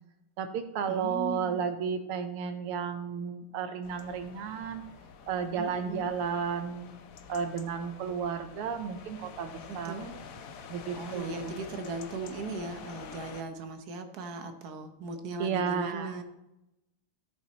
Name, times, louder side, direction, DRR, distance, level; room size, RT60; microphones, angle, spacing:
voice 1, 0.4-4.8 5.3-6.9 7.3-10.0 10.7-11.5 15.4-16.1, right 6 dB, 85° right, 8 dB, 1.8 m, -33 dB
voice 2, 0.9-1.6 5.6-6.1 9.7-10.2 10.9-16.2, right 3 dB, 55° right, 7 dB, 1.3 m, -38 dB
sound 1, 3.8-13.4, left 6 dB, 70° left, 0.8 m, -47 dB
14.0 x 6.4 x 4.0 m, 0.92 s
omnidirectional pair, 2.4 m